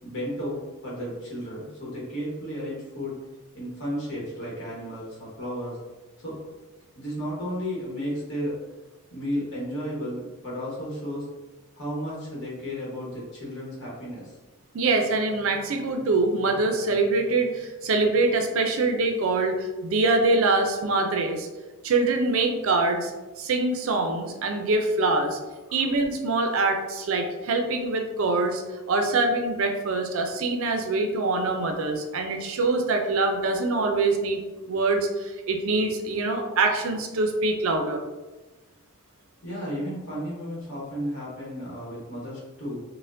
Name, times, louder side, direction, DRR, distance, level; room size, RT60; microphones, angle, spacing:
voice 1, 0.0-3.2 3.5-5.8 6.2-6.4 6.9-8.5 9.1-11.3 11.7-14.4 39.4-42.8, equal, 55° left, -5 dB, 1.1 m, -33 dB
voice 2, 14.7-21.5 21.8-23.1 23.4-25.4 25.7-28.6 28.9-34.4 34.7-38.0, right 3 dB, 65° right, 4 dB, 0.4 m, -24 dB
4.1 x 2.1 x 2.5 m, 1.2 s
head